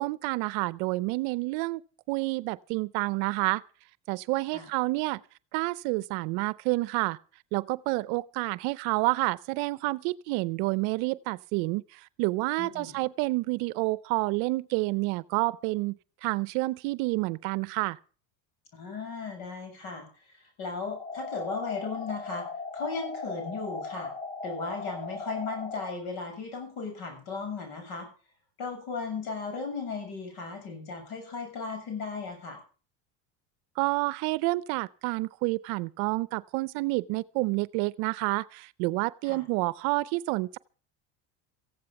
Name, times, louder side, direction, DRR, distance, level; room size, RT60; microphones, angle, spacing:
voice 1, 0.0-1.8 2.1-3.6 4.1-5.2 5.5-7.2 7.5-16.0 16.2-18.0 33.8-40.6, right 23 dB, 70° right, 0.6 m, -29 dB
voice 2, 12.6-12.9 18.7-20.1 20.4-22.5 22.7-24.1 24.4-28.1 28.6-32.6 39.2-39.4, left 4 dB, 70° left, 7.0 m, -36 dB
sound 1, 20.9-25.9, left 4 dB, 10° left, 1.0 m, -38 dB
15.0 x 9.5 x 6.9 m
cardioid pair, 135°, 38 cm